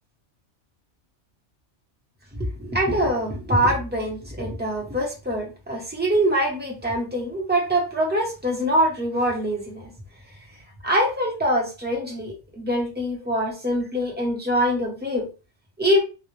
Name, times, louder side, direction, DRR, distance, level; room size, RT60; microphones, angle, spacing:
voice 1, 2.4-9.9 10.8-15.3 15.8-16.0, equal, 10° right, -2 dB, 0.6 m, -24 dB
2.1 x 2.0 x 3.0 m, 0.31 s
omnidirectional pair, 1.2 m